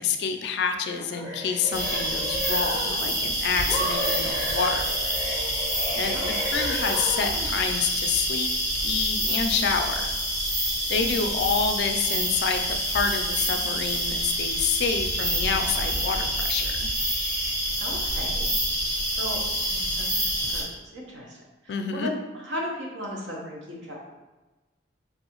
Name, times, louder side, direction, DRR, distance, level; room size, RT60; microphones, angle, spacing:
voice 1, 0.0-4.9 6.0-8.5 8.8-10.1 10.4-16.9 21.7-22.1, left 6 dB, 60° left, 6 dB, 0.3 m, -28 dB
sound 1, 0.9-3.2 3.7-7.5, equal, 60° right, 1.5 m, -33 dB
sound 2, 1.7-20.6, equal, 25° right, 1.4 m, -27 dB
voice 2, 17.8-18.5 19.1-19.4 19.7-21.4 21.6-24.0, left 1 dB, 80° right, -2 dB, 0.8 m, -36 dB
3.4 x 2.6 x 2.8 m, 1.1 s
head